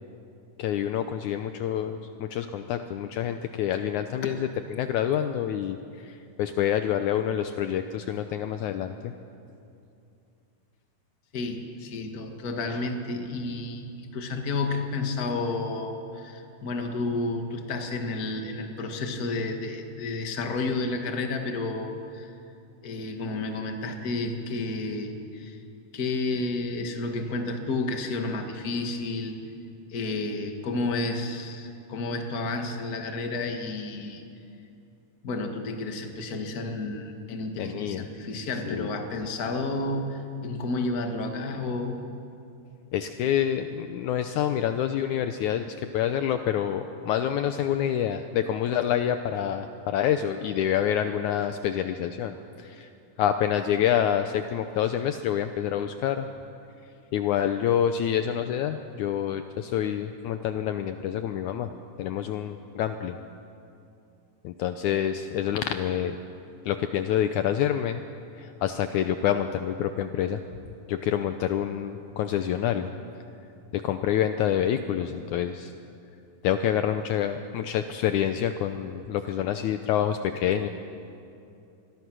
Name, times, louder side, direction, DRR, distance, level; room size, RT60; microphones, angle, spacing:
voice 1, 0.6-9.1 37.6-38.1 38.7-38.9 42.9-52.9 53.2-56.3 57.1-61.7 62.0-63.2 64.4-66.2 66.7-68.0 68.3-70.4 70.9-72.9 73.7-75.7 76.4-80.7, left 10 dB, 75° left, 8 dB, 1.9 m, -27 dB
voice 2, 11.3-22.3 22.8-25.6 25.9-29.3 29.9-34.2 35.2-42.0, left 2 dB, 35° left, 4 dB, 1.6 m, -31 dB
26.5 x 21.5 x 6.2 m, 2.6 s
omnidirectional pair, 3.8 m